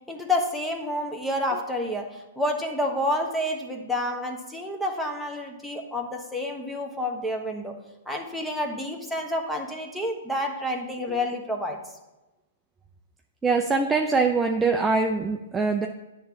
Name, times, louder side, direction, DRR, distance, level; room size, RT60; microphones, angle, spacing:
voice 1, 0.1-7.7 8.1-11.8, left 1 dB, 5° left, 1 dB, 1.3 m, -29 dB
voice 2, 13.4-15.9, right 4 dB, 10° right, 3 dB, 0.5 m, -23 dB
10.0 x 3.8 x 7.0 m, 1.0 s
hypercardioid pair, 130°, 0 cm